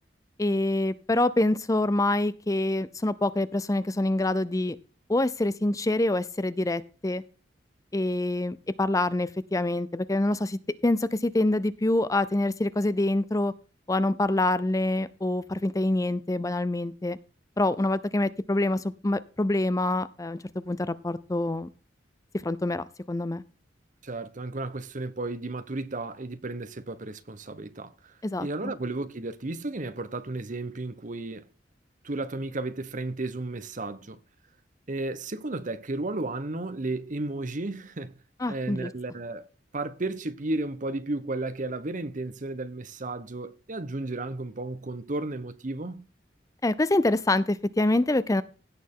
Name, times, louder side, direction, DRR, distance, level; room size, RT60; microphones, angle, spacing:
voice 1, 0.4-4.8 5.1-7.2 7.9-13.5 13.9-17.2 17.6-21.7 22.4-23.4 28.2-28.7 38.4-38.9 46.6-48.4, left 2 dB, 20° left, 0.5 m, -26 dB
voice 2, 24.0-28.1 28.4-31.5 32.0-34.2 34.9-38.2 38.5-39.5 39.7-46.1, right 2 dB, 45° right, 0.9 m, -33 dB
16.5 x 6.7 x 3.7 m
head